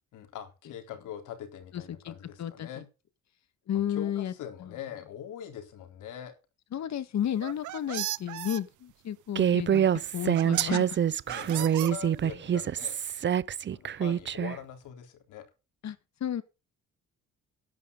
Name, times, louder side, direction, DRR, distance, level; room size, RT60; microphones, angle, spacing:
voice 1, 0.1-2.9 3.9-6.3 11.3-13.0 13.7-15.4, left 9 dB, 85° left, 3.8 m, -42 dB
voice 2, 1.7-2.8 3.7-4.3 4.6-4.7 6.7-9.9 10.1-11.0 15.8-16.4, left 10 dB, 65° left, 1.7 m, -33 dB
sound 1, 7.3-8.6 9.7-9.8 10.3-10.8 11.3-12.4, right 16 dB, 75° right, 0.7 m, -34 dB
Human voice, 9.3-14.6, right 9 dB, 40° right, 0.6 m, -26 dB
13.0 x 10.5 x 3.9 m
cardioid pair, 90°, 30 cm